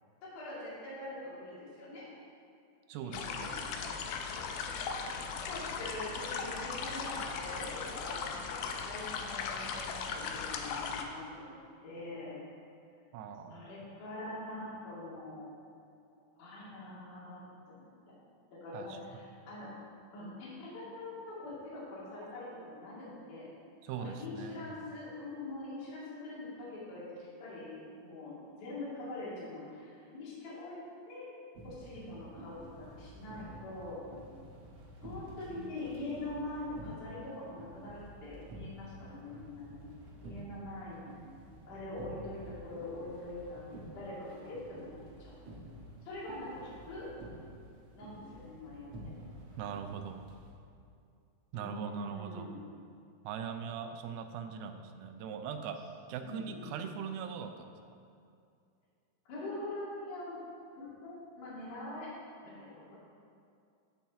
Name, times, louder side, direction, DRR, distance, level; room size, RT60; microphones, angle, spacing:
voice 1, 0.2-2.1 3.0-3.8 5.1-8.6 8.9-11.6 11.8-12.4 13.5-15.5 16.4-17.4 17.7-18.2 18.5-19.7 20.1-23.5 24.0-28.3 28.6-31.3 31.6-34.0 35.0-39.8 40.2-41.0 41.7-43.6 43.9-44.9 45.2-45.4 46.1-47.1 47.9-49.0 51.5-52.6 56.2-56.9 59.3-60.4 60.7-62.2 62.4-63.0, left 2 dB, 55° left, -8 dB, 3.6 m, -43 dB
voice 2, 2.9-3.9 13.1-13.7 18.7-19.2 23.8-24.8 35.5-35.8 49.6-50.3 51.5-52.5 53.2-55.8 56.1-57.7, right 7 dB, 80° right, 6 dB, 2.4 m, -41 dB
sound 1, 3.1-11.0, left 5 dB, 80° left, 2.4 m, -38 dB
sound 2, 31.6-50.5, right 1 dB, 60° right, 2.1 m, -50 dB
14.0 x 6.1 x 3.6 m, 2.4 s
omnidirectional pair, 4.5 m